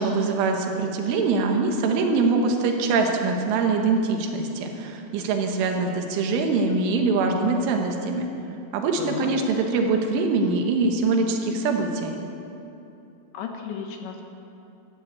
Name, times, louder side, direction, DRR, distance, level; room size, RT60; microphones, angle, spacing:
voice 1, 0.0-8.3 8.7-12.2, right 3 dB, 80° right, 3 dB, 3.8 m, -23 dB
voice 2, 9.0-9.3 13.3-14.2, left 6 dB, 75° left, 3 dB, 3.2 m, -34 dB
13.5 x 12.5 x 8.3 m, 2.9 s
omnidirectional pair, 5.6 m